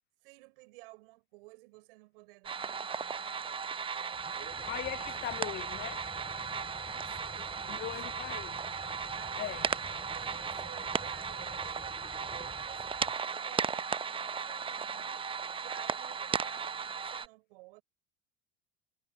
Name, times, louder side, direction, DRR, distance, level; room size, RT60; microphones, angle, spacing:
voice 1, 0.2-3.5 3.9-5.3 6.9-8.3 9.1-13.9 14.1-15.3 15.6-17.8, right 24 dB, 70° right, 5.7 m, -55 dB
sound 1, 2.4-17.3, right 6 dB, 20° right, 0.7 m, -36 dB
sound 2, 4.1-13.2, left 3 dB, 15° left, 6.5 m, -51 dB
voice 2, 4.7-6.1 7.7-8.6 9.4-9.6, left 15 dB, 40° left, 0.4 m, -39 dB
hypercardioid pair, 80°, 29 cm